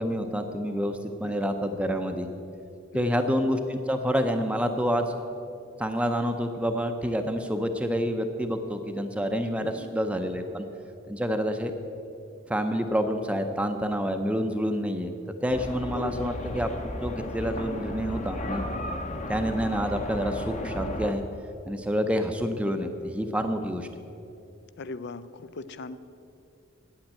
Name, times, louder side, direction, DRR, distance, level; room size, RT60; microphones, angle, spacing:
voice 1, 0.0-2.3 2.9-5.2 5.8-10.6 11.1-11.7 12.5-15.1 15.4-18.6 19.3-21.2 21.7-23.9, equal, 5° right, 6 dB, 0.5 m, -28 dB
voice 2, 1.2-1.5 2.9-3.3 9.6-9.9 15.9-16.3 24.8-26.0, left 3 dB, 55° left, 14 dB, 0.5 m, -39 dB
sound 1, 15.5-21.1, left 1 dB, 35° left, 0.8 m, -34 dB
8.9 x 8.7 x 8.8 m, 2.7 s
head